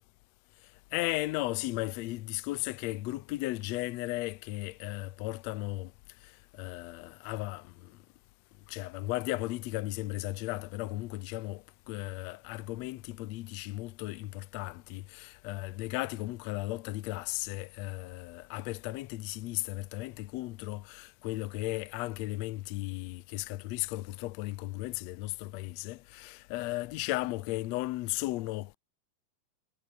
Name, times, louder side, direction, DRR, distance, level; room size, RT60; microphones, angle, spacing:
voice 1, 0.9-5.9 6.5-7.7 8.7-28.8, left 18 dB, 90° left, 1.5 m, -35 dB
omnidirectional pair, 3.9 m